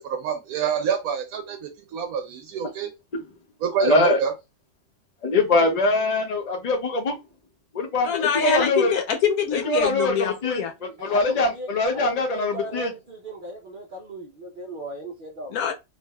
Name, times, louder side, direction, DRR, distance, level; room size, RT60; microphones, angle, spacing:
voice 1, 0.0-2.9 3.6-4.3, right 7 dB, 90° right, 1.1 m, -27 dB
voice 2, 3.8-4.2 5.2-7.2 7.7-8.9 9.5-12.9, left 2 dB, 45° left, 0.5 m, -23 dB
voice 3, 8.0-10.7 15.5-15.7, left 8 dB, 90° left, 1.2 m, -24 dB
voice 4, 11.0-15.6, equal, 55° right, 0.5 m, -37 dB
3.4 x 2.6 x 2.2 m
omnidirectional pair, 1.5 m